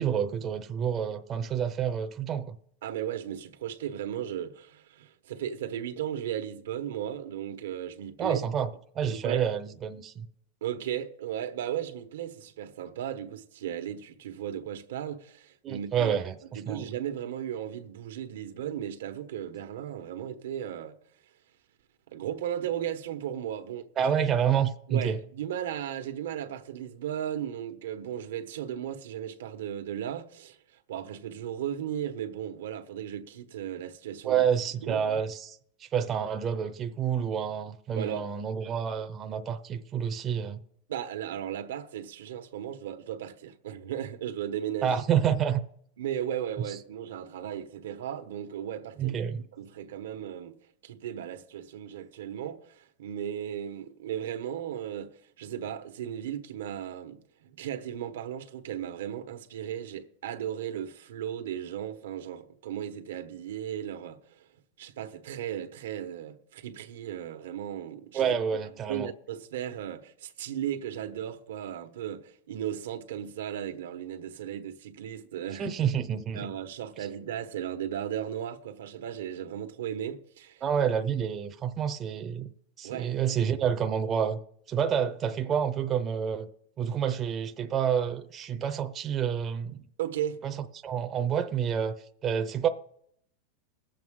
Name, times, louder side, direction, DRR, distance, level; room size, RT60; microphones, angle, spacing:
voice 1, 0.0-2.6 8.2-8.7 8.9-10.3 15.6-16.9 24.0-25.2 34.2-40.6 44.8-45.6 46.6-46.8 49.0-49.4 68.1-69.1 75.6-76.5 77.0-77.1 80.6-82.5 82.8-84.4 84.7-86.5 86.8-89.8 90.4-90.6 90.8-92.0 92.2-92.7, right 8 dB, 25° right, 0.6 m, -28 dB
voice 2, 2.8-8.4 9.1-9.4 10.6-16.1 16.5-21.0 22.1-24.1 24.9-30.6 30.9-34.4 34.8-35.2 38.0-38.3 40.9-45.0 46.0-49.2 49.5-50.6 50.8-64.5 64.8-68.4 68.9-75.7 76.3-80.6 82.8-83.1 90.0-90.5, right 10 dB, 90° right, 1.2 m, -36 dB
20.5 x 7.7 x 3.7 m
supercardioid pair, 155°, 0 cm